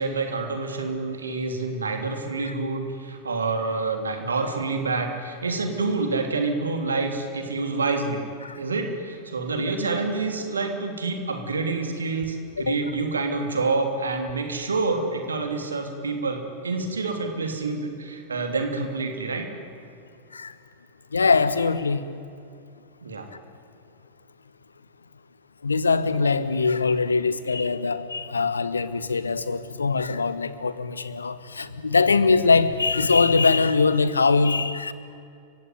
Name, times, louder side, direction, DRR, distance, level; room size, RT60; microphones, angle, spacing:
voice 1, 0.0-8.2 8.6-19.5 23.0-23.3, right 3 dB, 75° right, 5 dB, 3.1 m, -27 dB
voice 2, 21.1-22.0 25.6-34.9, left 4 dB, 75° left, 14 dB, 1.2 m, -22 dB
29.5 x 16.5 x 9.5 m, 2.5 s
figure-of-eight pair, 90°, 0 cm